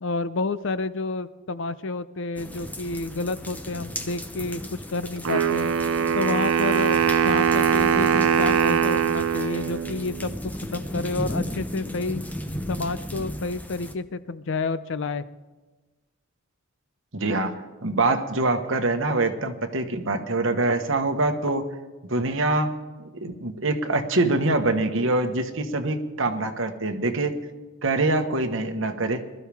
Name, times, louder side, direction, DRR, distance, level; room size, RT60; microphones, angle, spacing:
voice 1, 0.0-4.6 4.9-5.7 6.1-10.3 10.7-12.2 12.7-15.3, left 3 dB, 65° left, 14 dB, 0.6 m, -29 dB
sound 1, 2.4-13.9, left 1 dB, 10° left, 0.8 m, -35 dB
Wind instrument woodwind instrument, 5.2-10.3, right 7 dB, 80° right, 0.7 m, -22 dB
voice 2, 17.1-21.7 22.1-22.7 23.2-27.3 27.8-29.2, right 2 dB, 65° right, 6 dB, 1.4 m, -24 dB
21.5 x 13.0 x 3.5 m, 1.2 s
head